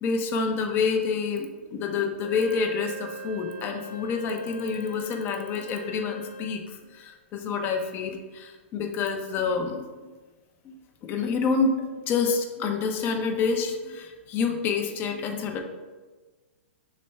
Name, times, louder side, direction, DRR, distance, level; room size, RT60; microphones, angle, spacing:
voice 1, 0.0-10.1 10.6-15.6, left 5 dB, 30° left, 4 dB, 0.5 m, -28 dB
Wind instrument woodwind instrument, 2.2-6.6, equal, 85° left, 0.6 m, -42 dB
3.2 x 3.0 x 4.2 m, 1.3 s
hypercardioid pair, 115°, 7 cm